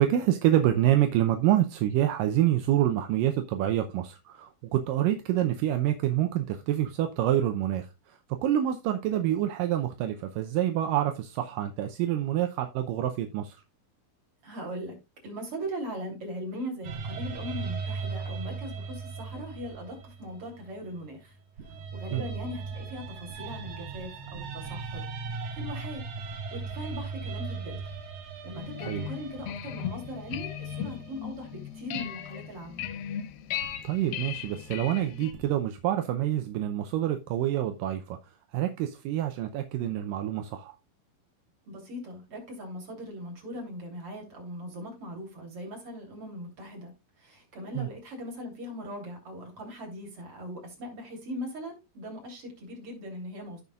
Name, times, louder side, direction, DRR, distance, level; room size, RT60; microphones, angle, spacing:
voice 1, 0.0-13.6 22.1-22.2 28.9-29.1 33.8-38.2 38.5-40.7 47.8-47.9, right 12 dB, 80° right, 2.1 m, -27 dB
voice 2, 14.4-14.9 15.2-21.3 21.9-25.0 25.5-26.0 26.5-27.8 28.4-32.9 41.7-46.9 47.2-53.6, equal, 35° right, 3.7 m, -40 dB
sound 1, 16.8-21.1 21.6-31.6 33.6-35.5, right 5 dB, 60° right, 2.5 m, -38 dB
sound 2, 28.5-35.3, left 10 dB, 75° left, 2.4 m, -37 dB
16.0 x 5.4 x 2.4 m
omnidirectional pair, 4.5 m